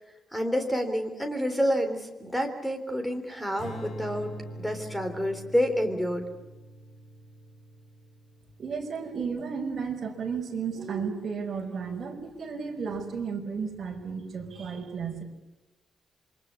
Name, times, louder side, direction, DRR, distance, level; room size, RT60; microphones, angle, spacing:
voice 1, 0.3-4.3 4.6-6.2, equal, 5° left, 6 dB, 3.7 m, -28 dB
Strum, 3.6-10.0, right 1 dB, 55° left, 5.0 m, -44 dB
voice 2, 8.6-15.2, right 5 dB, 40° right, 2 dB, 5.5 m, -33 dB
28.0 x 24.5 x 8.5 m, 1.0 s
wide cardioid pair, 165°, 0 cm